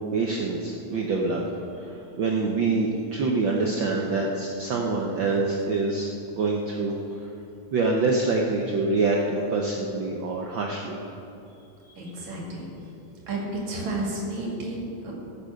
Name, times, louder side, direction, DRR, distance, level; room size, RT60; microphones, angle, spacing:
voice 1, 0.1-1.4 1.8-6.9 7.7-11.0, right 3 dB, 85° right, -1 dB, 1.0 m, -25 dB
voice 2, 12.0-12.7 13.3-15.1, right 2 dB, 65° right, -2 dB, 3.7 m, -31 dB
14.5 x 8.1 x 6.5 m, 2.7 s
omnidirectional pair, 3.5 m